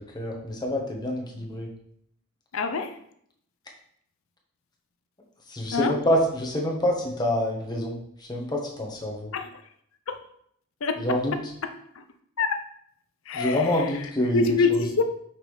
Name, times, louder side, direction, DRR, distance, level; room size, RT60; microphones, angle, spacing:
voice 1, 0.0-1.7 5.5-9.3 11.0-11.3 13.3-14.4 14.7-14.8, equal, 20° left, -1 dB, 1.1 m, -27 dB
voice 2, 2.5-3.0 5.7-5.9 9.3-9.5 10.1-10.2 10.8-11.0 11.9-12.0 12.4-12.6 13.3-14.0 14.3-15.0, left 4 dB, 65° left, 8 dB, 0.6 m, -25 dB
5.9 x 5.1 x 3.2 m, 0.68 s
head